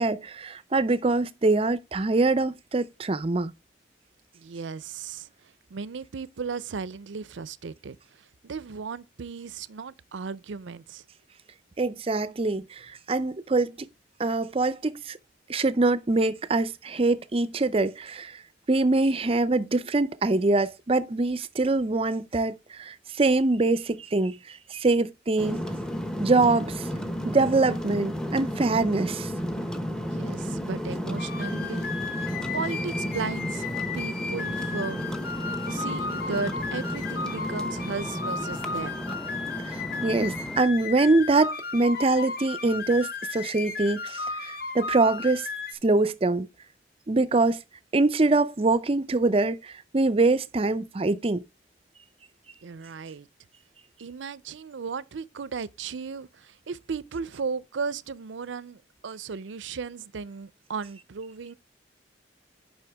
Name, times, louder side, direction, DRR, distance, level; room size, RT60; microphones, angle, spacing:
voice 1, 0.0-3.5 11.8-13.9 14.2-15.2 15.5-18.4 18.7-25.6 26.2-26.9 27.2-29.3 39.6-45.5 45.8-46.5 47.1-47.6 47.9-51.4, right 3 dB, 30° right, 0.5 m, -24 dB
voice 2, 4.3-8.0 8.4-11.0 30.1-31.9 32.1-33.6 33.9-35.2 35.7-39.1 52.6-53.3 54.0-61.5, right 5 dB, 80° right, 0.5 m, -36 dB
sound 1, 25.4-40.6, equal, 5° left, 0.8 m, -33 dB
sound 2, 31.2-45.7, left 4 dB, 55° left, 1.1 m, -35 dB
9.9 x 5.5 x 3.4 m
head